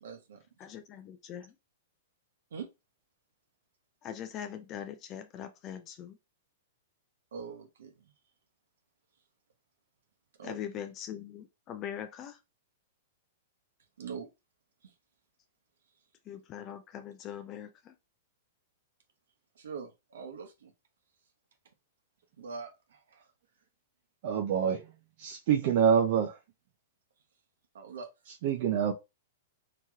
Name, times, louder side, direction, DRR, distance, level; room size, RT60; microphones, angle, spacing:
voice 1, 0.0-0.4 2.5-2.7 7.3-8.1 10.4-10.6 14.0-14.3 14.8-14.9 19.6-20.7 22.4-23.3 27.7-28.1, right 5 dB, 85° right, 0.8 m, -43 dB
voice 2, 0.6-1.5 4.0-6.2 10.4-12.4 16.3-18.0, left 9 dB, 30° left, 0.4 m, -42 dB
voice 3, 24.2-24.9 25.2-26.4 28.4-28.9, right 8 dB, 55° right, 0.4 m, -26 dB
3.0 x 2.9 x 2.3 m
hypercardioid pair, 140°, 0 cm